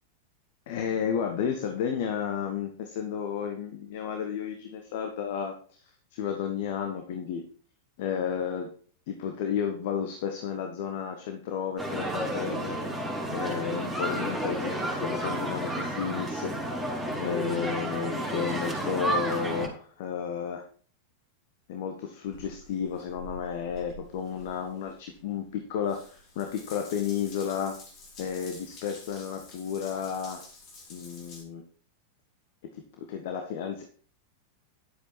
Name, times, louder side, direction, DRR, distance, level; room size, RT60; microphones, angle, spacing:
voice 1, 0.7-7.4 8.0-8.7 9.1-12.8 13.3-20.6 21.7-27.8 28.2-30.4 30.9-31.6 32.7-33.8, left 7 dB, 50° left, 5 dB, 1.6 m, -32 dB
sound 1, 11.8-19.7, right 1 dB, 5° left, 4.4 m, -31 dB
Water tap faucet / Bathtub (filling or washing) / Drip, 22.3-31.4, left 1 dB, 35° left, 3.4 m, -49 dB
11.5 x 8.7 x 4.5 m, 0.43 s
figure-of-eight pair, 90°, 0 cm